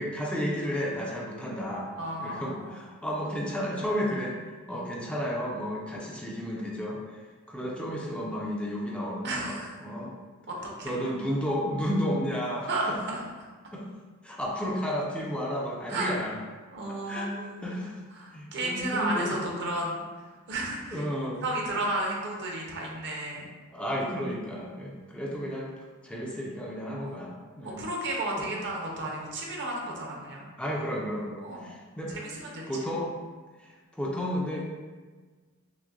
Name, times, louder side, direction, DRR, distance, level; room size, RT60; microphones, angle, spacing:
voice 1, 0.0-1.9 2.2-10.2 10.8-12.9 13.7-13.8 14.2-16.4 17.1-17.3 17.6-18.0 18.3-19.4 20.9-21.5 23.7-25.7 26.0-27.8 28.4-28.5 30.6-32.1 32.7-33.1 33.6-34.7, equal, 5° left, -4 dB, 0.4 m, -32 dB
voice 2, 1.9-2.8 4.7-4.8 9.2-9.7 10.5-11.0 12.7-13.2 15.9-16.2 16.7-17.6 18.1-21.0 21.4-23.5 26.9-27.3 27.6-30.5 31.4-31.7 32.1-32.9, right 1 dB, 55° right, -2 dB, 0.8 m, -33 dB
6.0 x 2.2 x 2.5 m, 1.4 s
head